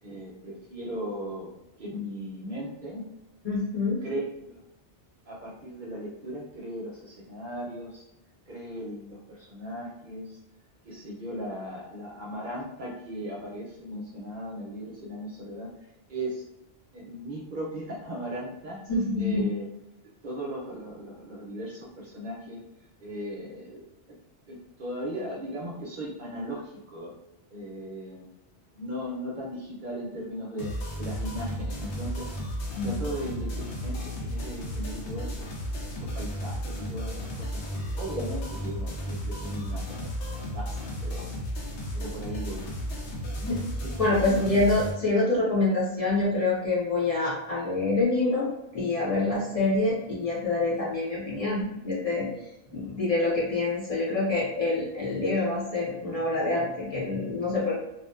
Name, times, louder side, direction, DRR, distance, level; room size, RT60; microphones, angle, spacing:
voice 1, 0.0-1.5 1.8-3.1 4.0-4.6 5.3-8.0 8.5-10.4 10.8-16.5 16.9-18.8 19.2-19.7 20.2-22.6 23.0-23.8 24.5-27.1 27.5-28.3 28.7-32.4 32.8-35.5 35.9-37.6 37.9-40.1 40.4-41.3 41.9-42.7 43.8-44.4 45.7-45.8, equal, 55° right, -5 dB, 0.7 m, -37 dB
voice 2, 3.4-4.0 18.9-19.5 32.7-32.9 43.4-43.6 44.0-48.5 48.7-52.3 52.7-57.7, left 2 dB, 35° left, -7 dB, 0.8 m, -26 dB
sound 1, 30.6-44.9, equal, 80° left, 0.9 m, -34 dB
2.5 x 2.1 x 2.3 m, 0.92 s
omnidirectional pair, 1.1 m